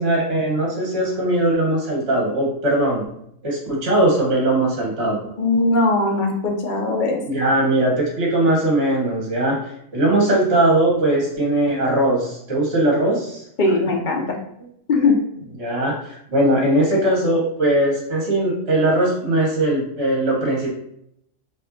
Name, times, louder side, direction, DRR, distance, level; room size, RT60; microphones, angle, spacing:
voice 1, 0.0-3.0 3.4-5.3 7.3-9.6 9.9-13.4 14.9-15.1 15.6-20.7, right 1 dB, 50° right, -2 dB, 1.4 m, -20 dB
voice 2, 5.4-7.2 13.6-14.4 14.9-15.1, left 3 dB, 45° left, 1 dB, 0.7 m, -19 dB
5.3 x 2.7 x 2.7 m, 0.74 s
omnidirectional pair, 1.4 m